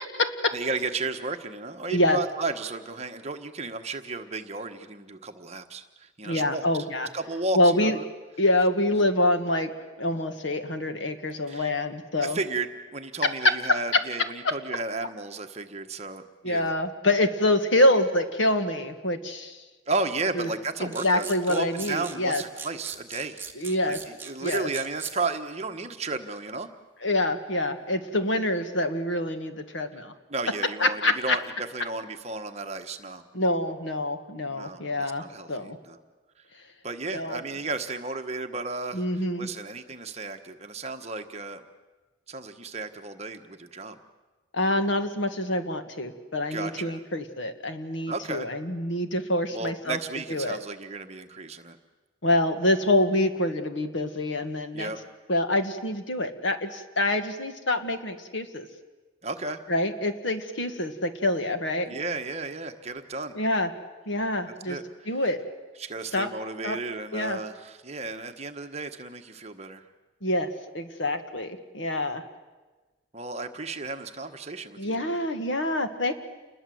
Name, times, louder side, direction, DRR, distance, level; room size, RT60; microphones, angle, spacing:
voice 1, 0.0-0.5 1.9-2.2 6.2-7.1 7.5-8.0 8.4-9.7 10.0-12.4 13.2-14.5 16.4-19.6 20.4-20.5 20.8-22.4 23.6-24.0 24.4-24.7 27.0-30.1 30.8-31.4 33.3-35.8 37.1-37.4 38.9-39.5 44.5-50.0 50.3-50.6 52.2-54.9 55.3-58.7 59.7-61.9 63.3-63.7 64.1-64.8 65.1-65.4 66.1-66.3 66.6-66.8 67.1-67.4 70.2-72.2 74.8-76.1, left 1 dB, 65° left, 8 dB, 1.8 m, -26 dB
voice 2, 0.5-6.6 7.1-8.0 11.5-11.7 12.2-16.7 19.9-23.4 23.8-26.7 30.3-33.2 34.5-36.0 36.8-39.0 39.4-41.6 42.3-44.0 46.5-47.0 48.1-48.5 49.5-51.8 54.7-55.0 59.2-59.6 61.9-63.4 64.7-64.8 65.8-69.8 73.1-75.2, right 3 dB, 30° right, 6 dB, 1.3 m, -33 dB
sound 1, 20.9-25.1, right 6 dB, 10° right, 1.7 m, -38 dB
28.5 x 21.0 x 7.9 m, 1.2 s
head